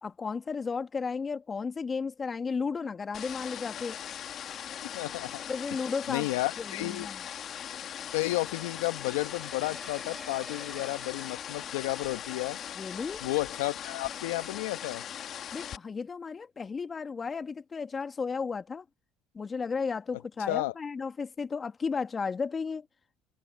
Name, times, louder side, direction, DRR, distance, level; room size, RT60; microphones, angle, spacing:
voice 1, 0.0-4.0 5.5-6.3 6.6-7.3 12.7-13.2 15.5-18.9 19.3-22.9, left 5 dB, 30° left, 1.8 m, -34 dB
sound 1, 3.1-15.8, left 9 dB, 50° left, 1.7 m, -40 dB
voice 2, 4.9-5.4 6.1-7.1 8.1-12.6 13.2-15.0 20.5-20.7, left 20 dB, 85° left, 1.3 m, -32 dB
sound 2, 9.3-11.7, right 2 dB, 15° right, 5.4 m, -50 dB
hypercardioid pair, 75°, 0 cm